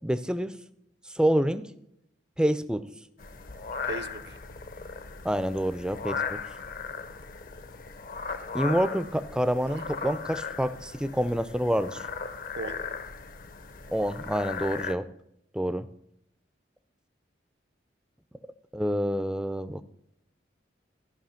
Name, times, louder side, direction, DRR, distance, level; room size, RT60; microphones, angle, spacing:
voice 1, 0.0-0.6 1.1-1.7 2.4-2.9 5.2-6.4 8.5-12.0 13.9-15.1 15.5-15.9 18.7-19.8, equal, 5° right, 13 dB, 0.4 m, -27 dB
sound 1, 3.2-14.9, left 5 dB, 45° left, 0.7 m, -37 dB
voice 2, 3.8-4.4 9.7-9.8 12.6-12.8, right 3 dB, 65° right, 14 dB, 0.7 m, -37 dB
13.0 x 5.6 x 5.7 m, 0.77 s
head